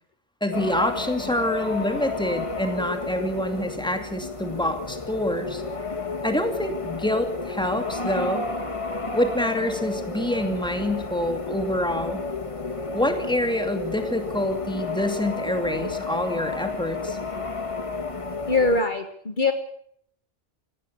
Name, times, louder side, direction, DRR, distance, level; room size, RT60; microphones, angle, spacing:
voice 1, 0.4-5.6 6.2-8.5 9.1-12.2 12.9-17.2, left 1 dB, 5° left, 6 dB, 2.6 m, -26 dB
sound 1, 0.5-18.8, left 3 dB, 30° left, 1.6 m, -32 dB
voice 2, 18.5-19.5, left 3 dB, 50° left, 8 dB, 1.5 m, -22 dB
19.0 x 16.5 x 8.6 m, 0.66 s
omnidirectional pair, 1.1 m